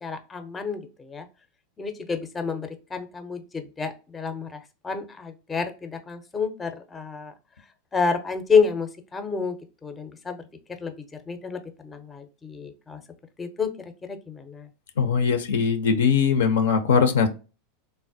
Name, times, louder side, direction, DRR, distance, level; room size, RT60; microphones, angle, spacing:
voice 1, 0.0-1.3 1.8-7.3 7.9-9.6 9.8-10.4 10.8-10.9 11.3-13.0 13.4-14.7, left 5 dB, 20° left, 8 dB, 0.5 m, -29 dB
voice 2, 15.0-17.3, left 6 dB, 75° left, 7 dB, 0.4 m, -21 dB
3.2 x 2.1 x 2.5 m, 0.32 s
hypercardioid pair, 90°, 0 cm